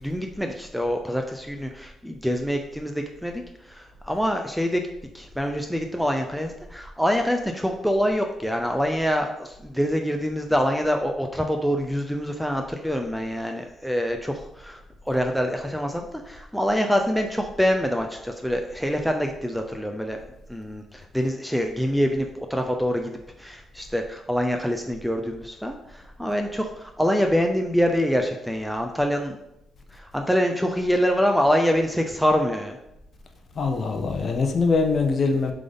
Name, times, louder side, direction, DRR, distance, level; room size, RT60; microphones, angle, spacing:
voice 1, 0.0-3.4 3.7-4.8 5.1-14.8 15.1-20.2 20.5-23.1 23.4-29.4 29.9-32.8, equal, ahead, 3 dB, 0.4 m, -25 dB
voice 2, 33.6-35.5, left 4 dB, 40° left, 5 dB, 0.7 m, -23 dB
7.6 x 3.8 x 3.5 m, 0.84 s
cardioid pair, 160°, 0 cm